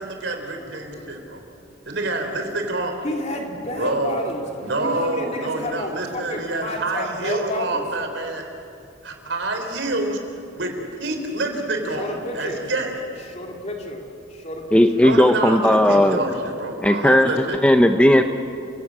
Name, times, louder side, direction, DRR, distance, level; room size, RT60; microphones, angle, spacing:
voice 1, 0.0-1.4 1.9-3.0 3.8-4.2 4.6-8.4 9.0-10.2 10.5-13.0 15.0-17.6, right 2 dB, 70° right, 4 dB, 3.9 m, -27 dB
voice 2, 0.6-1.1 3.0-4.4 4.8-7.8 11.9-12.6 13.2-15.1, left 1 dB, 35° left, 2 dB, 2.6 m, -31 dB
voice 3, 14.7-16.2 16.8-17.3 17.6-18.2, left 1 dB, 5° left, 6 dB, 0.7 m, -15 dB
29.5 x 17.0 x 8.8 m, 2.6 s
head